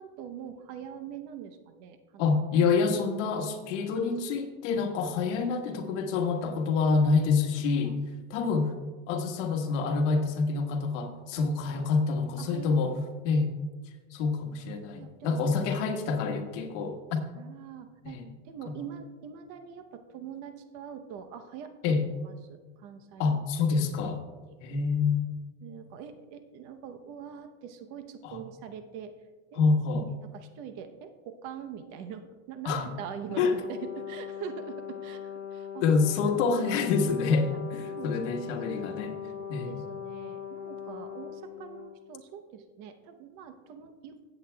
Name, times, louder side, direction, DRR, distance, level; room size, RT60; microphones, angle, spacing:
voice 1, 0.0-2.3 7.4-7.5 7.8-7.9 8.3-8.5 11.4-11.9 12.4-12.7 14.9-15.6 17.3-23.3 24.5-24.6 25.6-29.1 29.5-29.6 30.2-35.8 37.8-38.9 39.4-44.3, right 8 dB, 50° right, 8 dB, 0.9 m, -43 dB
voice 2, 2.2-8.0 8.3-8.7 9.1-12.9 13.2-13.5 14.1-17.2 18.0-18.3 21.8-22.0 23.2-24.2 24.6-25.4 28.2-28.4 29.5-30.1 32.6-32.9 33.4-33.5 35.8-39.2 39.5-39.8, left 4 dB, 65° left, 4 dB, 1.5 m, -27 dB
Brass instrument, 33.3-42.0, left 8 dB, 85° left, 1.3 m, -40 dB
16.0 x 8.1 x 2.3 m, 1.4 s
supercardioid pair, 140°, 38 cm